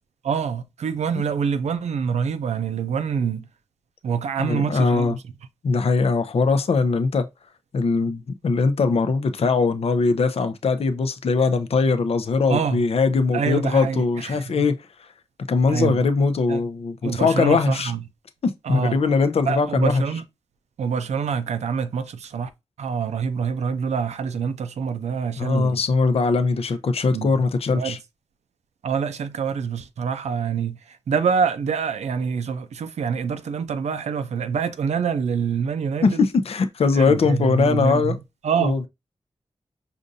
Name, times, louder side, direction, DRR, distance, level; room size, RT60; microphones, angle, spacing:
voice 1, 0.2-3.5 4.0-5.1 12.5-12.8 13.3-14.4 15.7-16.0 16.5-16.6 17.0-18.0 18.6-19.0 19.5-20.2 20.8-22.5 22.8-25.8 27.1-27.3 27.7-28.0 28.8-36.3 36.9-38.2 38.4-38.8, right 6 dB, 85° right, 0.4 m, -26 dB
voice 2, 4.4-5.2 5.6-7.3 7.7-14.8 15.5-17.9 18.4-20.0 25.4-28.0 36.0-38.2 38.6-38.9, left 4 dB, 60° left, 0.5 m, -21 dB
5.1 x 2.5 x 2.6 m
cardioid pair, 70°, 11 cm